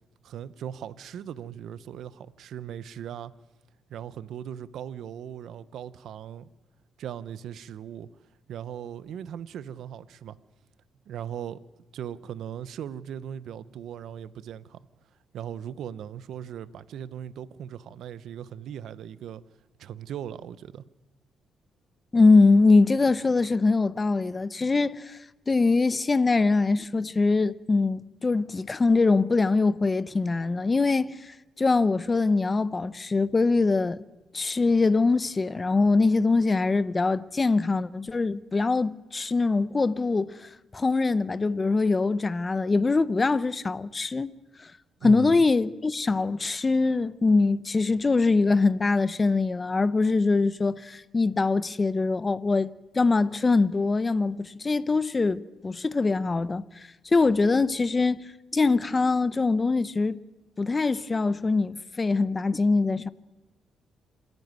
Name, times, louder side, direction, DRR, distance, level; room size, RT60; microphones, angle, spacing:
voice 1, 0.2-3.3 3.9-6.5 7.0-8.1 8.5-10.4 11.1-11.6 11.9-14.8 15.3-19.4 19.8-20.8 45.0-45.4, right 9 dB, 75° right, 0.8 m, -38 dB
voice 2, 22.1-25.2 25.5-34.0 34.3-44.7 45.0-52.7 52.9-60.2 60.6-63.1, left 3 dB, 25° left, 0.7 m, -23 dB
27.0 x 11.0 x 9.5 m
cardioid pair, 90°, 0 cm